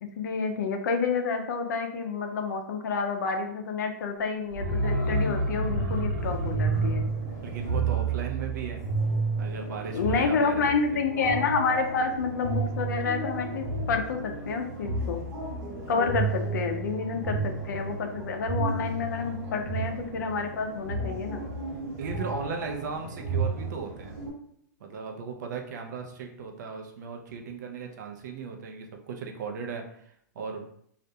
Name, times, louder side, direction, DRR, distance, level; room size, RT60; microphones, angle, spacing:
voice 1, 0.0-7.0 9.9-15.2 15.9-21.4, left 5 dB, 75° left, 5 dB, 0.5 m, -29 dB
sound 1, 4.5-9.3 9.5-9.6, equal, 85° right, 0.9 m, -30 dB
sound 2, 6.2-24.3, right 3 dB, 50° right, 1.2 m, -32 dB
voice 2, 7.4-8.8 9.3-11.0 15.8-16.0 22.0-24.1 24.8-30.7, right 5 dB, 70° right, 3 dB, 0.5 m, -37 dB
2.4 x 2.2 x 2.7 m, 0.66 s
hypercardioid pair, 130°, 10 cm